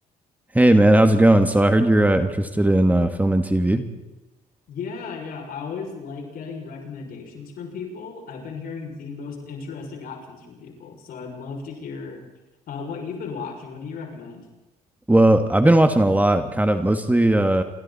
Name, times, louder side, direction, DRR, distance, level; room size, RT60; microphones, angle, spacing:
voice 1, 0.5-3.8 15.1-17.6, right 1 dB, 10° right, 8 dB, 1.9 m, -17 dB
voice 2, 4.7-12.2 12.7-14.5, left 5 dB, 70° left, 1 dB, 6.6 m, -35 dB
28.0 x 23.5 x 4.3 m, 1.0 s
supercardioid pair, 80°, 16 cm